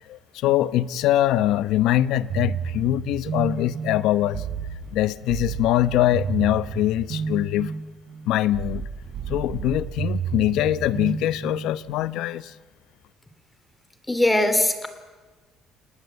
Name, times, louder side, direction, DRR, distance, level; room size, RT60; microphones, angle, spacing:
voice 1, 0.1-4.4 4.9-7.7 8.2-8.9 9.3-12.5, left 13 dB, 75° left, 15 dB, 0.9 m, -23 dB
sound 1, 2.3-12.1, right 6 dB, 50° right, 6.3 m, -31 dB
voice 2, 14.1-14.9, left 1 dB, 10° left, 10 dB, 3.1 m, -20 dB
29.5 x 19.0 x 8.2 m, 1.4 s
cardioid pair, 120°, 0 cm